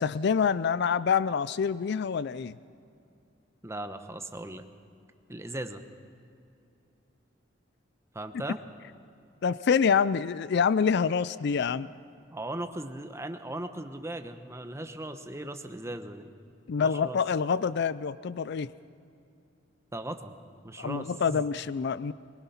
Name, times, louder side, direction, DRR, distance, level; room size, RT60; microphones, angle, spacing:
voice 1, 0.0-2.5 9.4-11.9 16.7-18.7 20.8-22.1, left 6 dB, 60° left, 17 dB, 0.4 m, -26 dB
voice 2, 3.6-4.7 5.3-5.8 8.1-8.6 12.3-16.2 16.8-17.2 19.9-20.3 20.6-21.4, right 1 dB, 15° right, 8 dB, 1.0 m, -38 dB
22.0 x 20.5 x 5.8 m, 2.6 s
head